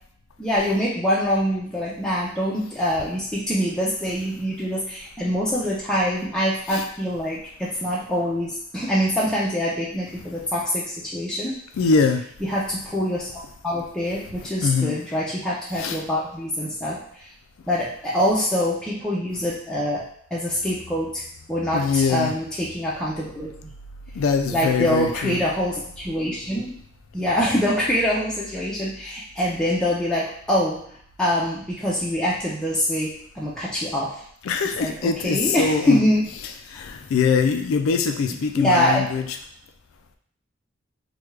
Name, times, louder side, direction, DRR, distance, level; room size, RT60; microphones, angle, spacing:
voice 1, 0.4-11.5 12.5-17.3 17.7-20.0 20.3-21.2 21.5-23.5 24.5-26.8 27.1-30.8 31.2-34.2 34.8-36.2 38.5-39.0, equal, 5° left, -7 dB, 0.5 m, -24 dB
voice 2, 11.8-12.2 14.4-15.0 15.7-16.0 21.7-22.3 24.1-25.4 34.4-36.0 36.7-39.4, left 5 dB, 90° left, 5 dB, 0.4 m, -23 dB
3.4 x 2.2 x 3.2 m, 0.64 s
head